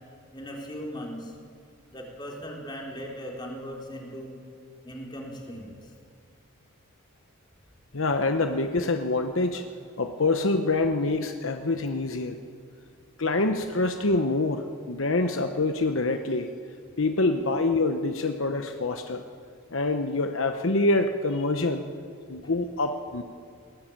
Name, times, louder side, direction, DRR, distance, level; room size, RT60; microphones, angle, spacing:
voice 1, 0.3-1.3 1.9-4.4 4.8-5.9, equal, 20° left, -1 dB, 3.8 m, -38 dB
voice 2, 7.9-9.6 10.0-12.4 13.2-16.5 17.0-19.2 19.7-21.8 22.3-23.2, left 2 dB, 65° left, 6 dB, 1.0 m, -26 dB
21.0 x 17.5 x 8.8 m, 2.3 s
head